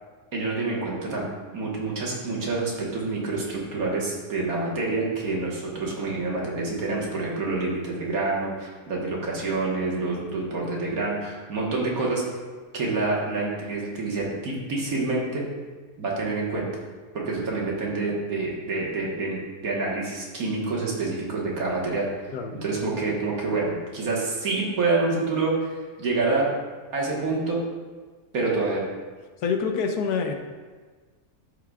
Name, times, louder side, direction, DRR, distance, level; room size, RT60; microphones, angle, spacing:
voice 1, 0.3-1.3 1.5-12.2 12.7-15.4 16.0-16.7 17.1-22.1 22.6-26.5 26.9-27.6 28.3-28.9, right 3 dB, 65° right, -3 dB, 1.8 m, -27 dB
voice 2, 29.4-30.3, left 5 dB, 80° left, 5 dB, 1.3 m, -26 dB
13.0 x 4.8 x 2.4 m, 1.4 s
omnidirectional pair, 1.7 m